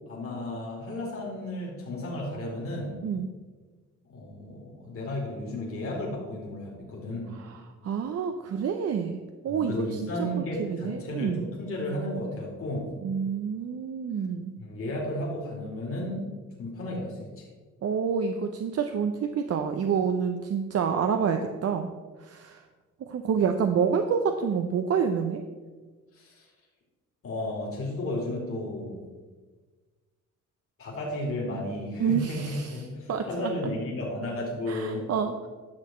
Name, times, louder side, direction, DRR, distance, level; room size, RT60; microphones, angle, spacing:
voice 1, 0.1-3.0 4.0-7.3 9.5-12.9 14.6-16.2 16.6-17.5 26.1-26.5 27.2-29.1 30.8-35.1, left 1 dB, 50° left, -3 dB, 2.7 m, -33 dB
voice 2, 7.4-11.5 13.0-14.5 17.8-21.9 22.2-22.7 23.0-25.4 32.0-33.5 34.7-35.5, right 6 dB, 55° right, 6 dB, 0.7 m, -28 dB
10.5 x 6.4 x 4.3 m, 1.4 s
cardioid pair, 90°, 30 cm